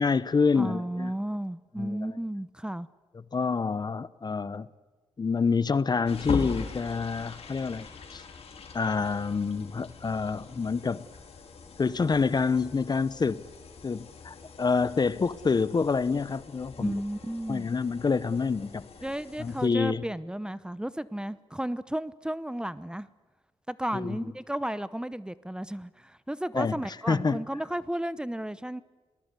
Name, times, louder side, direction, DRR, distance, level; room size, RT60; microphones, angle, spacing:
voice 1, 0.0-1.1 1.8-2.0 3.3-4.7 5.2-7.9 8.1-8.2 8.7-11.1 11.8-13.4 13.8-16.9 17.5-18.8 19.4-20.0 23.9-24.2 26.5-26.8 27.1-27.4, left 5 dB, 40° left, 0.9 m, -27 dB
voice 2, 0.6-2.9 16.8-17.7 19.0-23.1 23.7-28.8, right 1 dB, 10° right, 0.8 m, -33 dB
sound 1, 6.1-19.7, left 5 dB, 70° left, 3.9 m, -42 dB
28.5 x 19.5 x 8.3 m
cardioid pair, 65°, 11 cm